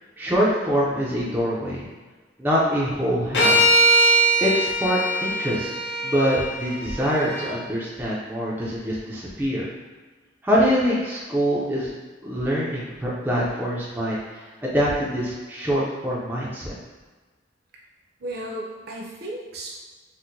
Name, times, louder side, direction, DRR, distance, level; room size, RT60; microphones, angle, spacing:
voice 1, 0.2-1.9 2.4-3.8 4.4-5.7 6.0-9.7 10.4-11.9 12.2-16.8, equal, 10° right, -6 dB, 0.5 m, -24 dB
sound 1, 3.3-7.5, right 1 dB, 65° left, 0.5 m, -21 dB
voice 2, 18.2-19.8, right 1 dB, 55° right, -3 dB, 0.6 m, -34 dB
4.3 x 2.1 x 2.6 m, 1.3 s
head